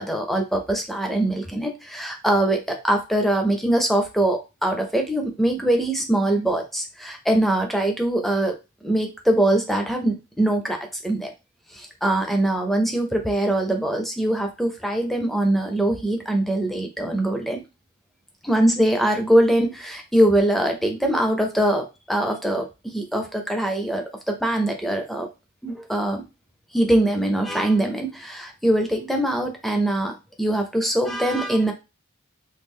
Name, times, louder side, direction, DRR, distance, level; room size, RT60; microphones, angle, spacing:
voice 1, 0.0-8.5 8.8-11.3 11.7-17.6 18.4-25.3 25.6-26.2 26.7-31.7, right 1 dB, ahead, 4 dB, 0.5 m, -22 dB
3.1 x 2.4 x 3.6 m, 0.27 s
head